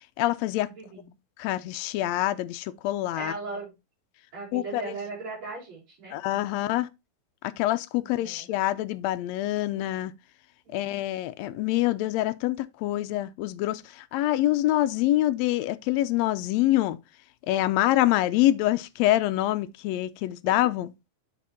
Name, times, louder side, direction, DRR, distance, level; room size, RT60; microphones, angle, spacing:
voice 1, 0.2-0.7 1.4-3.3 4.5-4.8 6.1-6.9 7.6-10.1 10.7-17.0 17.5-20.9, left 15 dB, 80° left, 1.7 m, -25 dB
voice 2, 0.7-1.1 3.1-3.7 4.3-6.6 7.9-8.5 10.6-11.0 20.4-20.7, right 3 dB, 65° right, 4.8 m, -39 dB
8.4 x 4.4 x 4.2 m
omnidirectional pair, 3.3 m